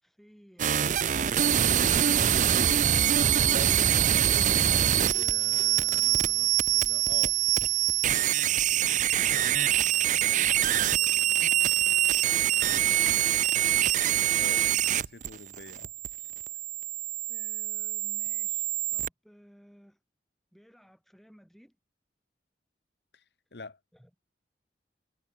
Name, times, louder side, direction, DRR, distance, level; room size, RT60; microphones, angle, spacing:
voice 1, 0.0-2.1 9.3-13.5 17.3-20.0 20.5-21.8 23.9-24.1, equal, ahead, 5.8 m, -58 dB
sound 1, 0.6-19.1, right 11 dB, 40° right, 0.5 m, -25 dB
voice 2, 5.1-7.4 14.3-15.9 23.1-23.2 23.5-23.8, left 3 dB, 65° left, 1.1 m, -46 dB
head